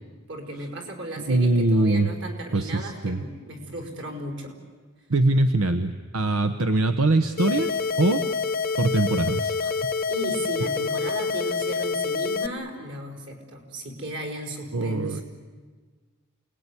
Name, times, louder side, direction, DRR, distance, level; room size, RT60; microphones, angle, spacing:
voice 1, 0.3-4.6 10.1-15.2, right 1 dB, 60° right, 4 dB, 4.9 m, -35 dB
voice 2, 1.2-2.1 2.5-3.2 5.1-7.7 8.0-8.2 8.8-9.8 14.7-15.2, right 2 dB, 80° right, 9 dB, 1.0 m, -22 dB
sound 1, 7.4-12.5, left 5 dB, 45° left, 0.9 m, -27 dB
28.5 x 19.5 x 9.8 m, 1.5 s
head